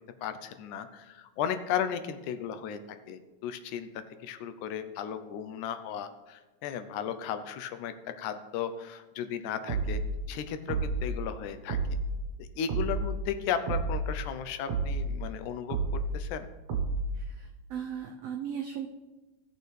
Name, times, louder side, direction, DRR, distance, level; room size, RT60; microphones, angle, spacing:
voice 1, 0.2-10.0 10.3-11.8 12.4-16.5, left 8 dB, 80° left, 9 dB, 2.1 m, -35 dB
sound 1, 9.7-10.1 10.7-11.1 11.7-12.1 12.7-13.1 13.7-14.1 14.7-15.1 15.7-16.1 16.7-17.1, right 4 dB, 60° right, 2.3 m, -30 dB
voice 2, 17.2-18.9, right 8 dB, 85° right, 3 dB, 1.4 m, -37 dB
16.5 x 6.6 x 3.3 m, 1.2 s
omnidirectional pair, 3.5 m